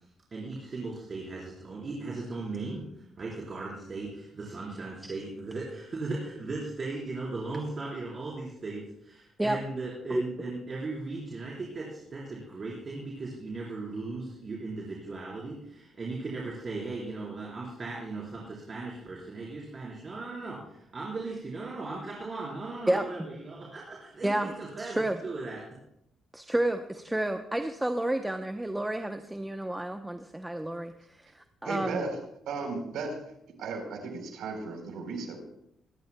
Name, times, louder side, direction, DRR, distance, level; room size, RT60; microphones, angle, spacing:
voice 1, 0.3-2.9 3.2-25.6, right 3 dB, 40° right, -6 dB, 4.2 m, -37 dB
voice 2, 10.1-10.5 22.9-23.1 24.2-24.5 24.8-25.2 26.3-32.1, right 1 dB, 10° right, 6 dB, 0.8 m, -30 dB
voice 3, 31.6-32.1 32.5-33.2 33.6-35.4, right 4 dB, 80° right, 3 dB, 3.9 m, -35 dB
25.0 x 12.0 x 2.3 m, 0.78 s
cardioid pair, 90°, 0 cm